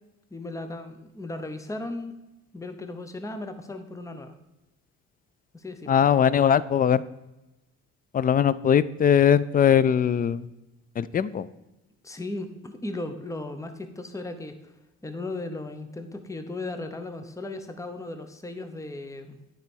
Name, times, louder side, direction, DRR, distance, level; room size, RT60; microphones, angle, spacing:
voice 1, 0.3-2.2 2.5-4.3 5.5-5.9 12.0-14.7 15.0-19.4, left 2 dB, 10° left, 8 dB, 0.8 m, -36 dB
voice 2, 5.9-7.0 8.1-10.5 11.0-11.5, left 8 dB, 30° left, 18 dB, 0.4 m, -20 dB
9.5 x 4.5 x 5.4 m, 0.97 s
cardioid pair, 90°, 30 cm